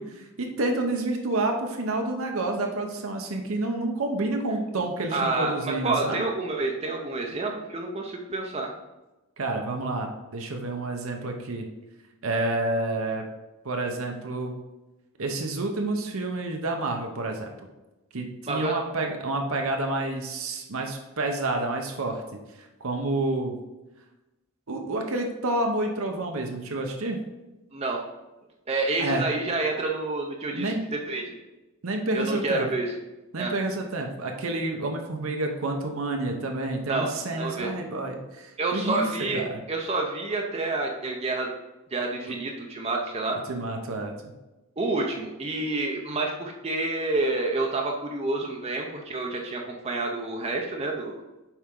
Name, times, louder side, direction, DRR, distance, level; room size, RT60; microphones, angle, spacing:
voice 1, 0.0-6.2 9.4-11.7 12.2-13.2 13.6-14.5 15.2-17.5 18.1-23.5 24.7-27.2 29.0-29.3 30.5-30.8 31.8-32.7 33.3-39.6 42.3-42.4 43.5-44.3, right 2 dB, 70° right, 3 dB, 0.8 m, -29 dB
voice 2, 5.1-8.7 18.5-18.7 27.7-28.0 28.7-31.3 32.1-32.9 33.4-33.5 36.9-37.7 38.6-41.5 41.9-43.4 44.8-51.2, right 2 dB, 30° right, 1 dB, 0.6 m, -28 dB
7.2 x 4.9 x 3.7 m, 1.0 s
head